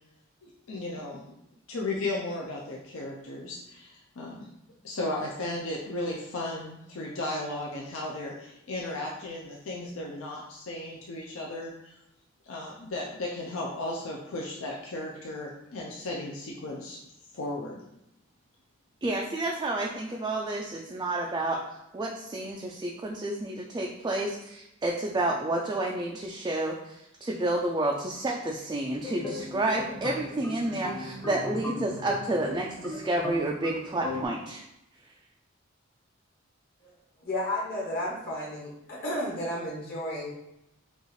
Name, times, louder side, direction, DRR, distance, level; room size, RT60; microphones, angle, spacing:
voice 1, 0.4-1.2 1.7-4.5 4.8-11.9 12.4-17.0 17.3-17.8, left 2 dB, 70° left, -2 dB, 0.5 m, -35 dB
voice 2, 19.0-34.6, right 2 dB, 20° right, -1 dB, 0.3 m, -30 dB
sound 1, 29.0-34.2, left 1 dB, 20° left, 0.8 m, -37 dB
voice 3, 37.2-40.3, left 1 dB, 45° left, -4 dB, 1.1 m, -32 dB
5.2 x 2.4 x 3.1 m, 0.84 s
head